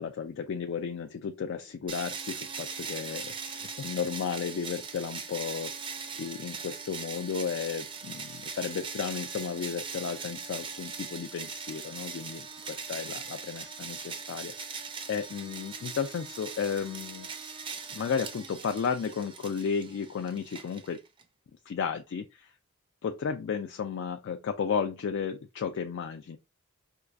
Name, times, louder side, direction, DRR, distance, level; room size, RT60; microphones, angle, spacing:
voice 1, 0.0-5.7 6.2-17.3 17.9-21.0 21.7-22.5 23.0-26.4, left 6 dB, 60° left, 0.3 m, -34 dB
sound 1, 1.9-21.2, right 5 dB, 25° right, 0.4 m, -40 dB
4.5 x 2.3 x 2.4 m
head